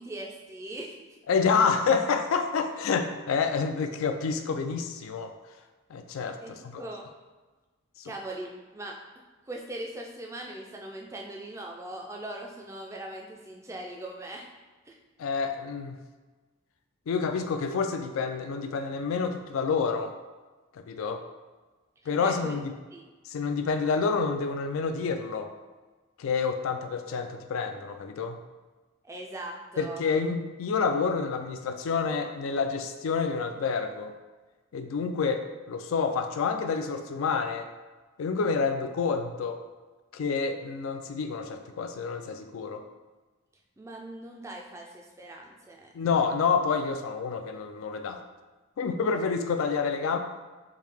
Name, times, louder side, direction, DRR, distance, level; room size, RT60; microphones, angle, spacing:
voice 1, 0.0-1.2 6.4-7.0 8.0-9.0 9.5-14.5 14.8-15.0 22.0-22.5 22.9-23.0 29.0-30.1 43.8-46.3, right 1 dB, 15° right, 0 dB, 0.3 m, -40 dB
voice 2, 1.3-5.3 5.9-6.4 6.6-6.8 8.0-8.1 15.2-16.0 17.1-20.1 20.7-21.2 22.1-22.7 23.3-25.5 26.2-28.4 29.8-34.1 34.7-37.7 38.2-39.6 40.1-42.8 45.9-48.2 48.8-50.2, left 5 dB, 75° left, 7 dB, 0.3 m, -28 dB
3.2 x 2.7 x 3.4 m, 1.3 s
head